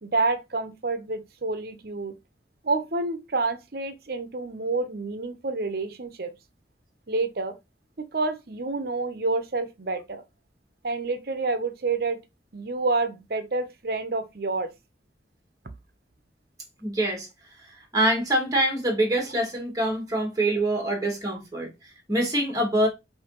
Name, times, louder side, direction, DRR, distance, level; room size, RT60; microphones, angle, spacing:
voice 1, 0.0-2.2 2.6-6.3 7.1-7.5 8.0-10.2 10.8-12.2 12.5-14.7, right 3 dB, 55° right, 0.7 m, -28 dB
voice 2, 16.8-17.3 17.7-22.9, right 1 dB, 20° right, 1.6 m, -25 dB
5.6 x 2.7 x 3.0 m
head